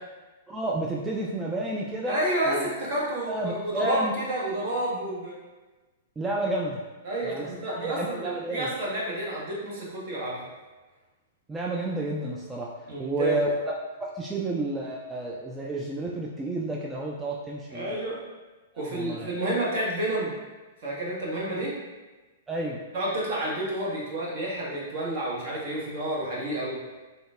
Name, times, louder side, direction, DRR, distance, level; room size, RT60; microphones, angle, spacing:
voice 1, 0.5-2.2 2.5-2.7 3.3-4.1 6.2-6.8 7.2-8.7 11.5-12.7 13.0-13.7 14.0-18.0 18.7-19.3 21.5-21.6 22.5-22.8, right 1 dB, 15° right, -3 dB, 0.3 m, -31 dB
voice 2, 2.1-5.4 7.0-10.5 12.9-13.4 17.7-18.2 18.8-20.4 20.8-21.7 22.9-26.8, right 1 dB, 55° right, -5 dB, 1.0 m, -30 dB
3.8 x 2.1 x 2.3 m, 1.2 s
hypercardioid pair, 110°, 0 cm